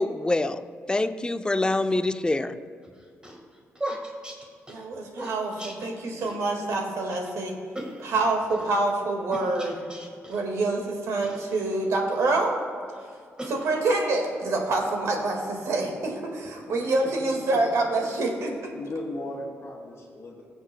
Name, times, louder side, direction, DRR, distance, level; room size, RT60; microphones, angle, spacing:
voice 1, 0.0-2.6, left 2 dB, 15° left, 10 dB, 0.5 m, -25 dB
sound 1, 2.8-6.4 6.7-6.8 7.1-7.3 7.8-8.7 9.3-10.5 11.2-12.3 12.9-14.1, right 1 dB, 15° right, 1.6 m, -39 dB
voice 2, 4.7-7.6 8.0-9.8 10.3-12.6 13.4-18.7, right 2 dB, 80° right, 1 dB, 1.8 m, -26 dB
voice 3, 16.7-17.7 18.7-20.4, left 2 dB, 60° left, -1 dB, 1.5 m, -37 dB
18.0 x 7.1 x 2.2 m, 2.2 s
cardioid pair, 60°, 5 cm